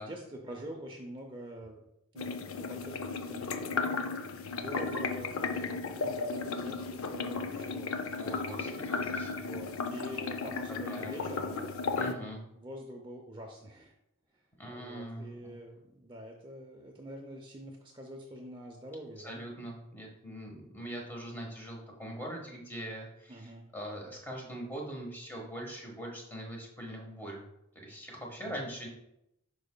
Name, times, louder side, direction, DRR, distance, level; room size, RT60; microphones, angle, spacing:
voice 1, 0.0-1.8 2.1-7.9 9.3-11.6 12.6-13.9 14.7-19.4 23.3-23.7 28.4-28.6, equal, 20° right, 1 dB, 0.6 m, -46 dB
sound 1, 2.2-12.1, left 4 dB, 70° left, 0.5 m, -35 dB
voice 2, 8.2-9.3 10.7-11.2 11.9-12.4 14.6-15.6 19.2-27.4 27.7-28.9, right 1 dB, 10° left, -1 dB, 1.2 m, -42 dB
10.5 x 4.8 x 2.2 m, 0.84 s
head